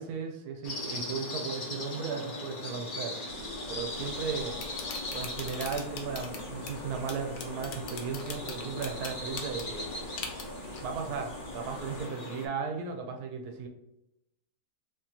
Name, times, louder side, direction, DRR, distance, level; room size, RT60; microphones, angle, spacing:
voice 1, 0.0-3.2 3.7-4.6 5.1-9.9 10.8-13.7, right 5 dB, 80° right, 4 dB, 1.2 m, -36 dB
sound 1, 0.6-12.5, left 2 dB, 40° left, 0.8 m, -39 dB
sound 2, 3.3-12.1, right 2 dB, 60° right, 1.2 m, -48 dB
sound 3, 3.9-12.5, left 5 dB, 75° left, 1.1 m, -44 dB
3.7 x 3.0 x 2.8 m, 0.85 s
omnidirectional pair, 1.6 m